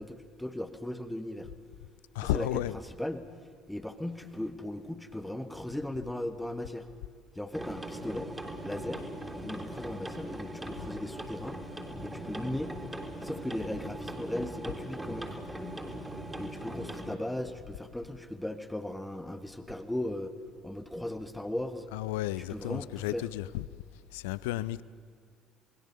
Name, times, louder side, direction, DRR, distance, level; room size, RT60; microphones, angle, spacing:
voice 1, 0.0-1.5 2.2-2.5 3.0-3.3 3.7-6.9 7.4-8.3 8.6-9.0 9.4-11.6 12.0-12.8 13.2-15.4 16.4-20.3 20.6-21.9 22.4-23.2, left 1 dB, 5° left, 1.6 m, -37 dB
voice 2, 2.1-2.8 21.9-23.7 24.1-24.8, left 15 dB, 65° left, 0.6 m, -33 dB
sound 1, 7.5-17.1, right 1 dB, 10° right, 3.4 m, -40 dB
28.0 x 20.5 x 6.8 m
figure-of-eight pair, 55°, 0 cm